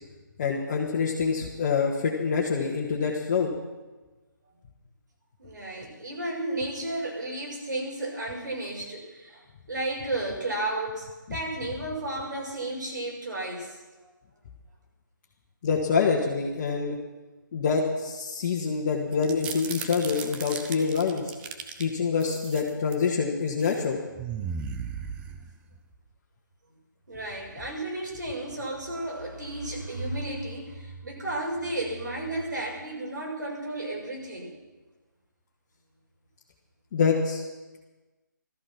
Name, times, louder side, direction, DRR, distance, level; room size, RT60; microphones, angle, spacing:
voice 1, 0.4-3.5 15.6-17.0 17.5-21.2 21.8-24.0 36.9-37.4, left 5 dB, 30° left, -3 dB, 1.9 m, -26 dB
voice 2, 5.4-14.1 27.1-34.5, right 2 dB, 65° right, -1 dB, 6.3 m, -33 dB
sound 1, 19.1-21.8 22.2-23.1 23.5-23.8 24.2-25.8, right 6 dB, 10° right, 0.6 m, -36 dB
17.0 x 13.5 x 6.0 m, 1.2 s
figure-of-eight pair, 155°, 11 cm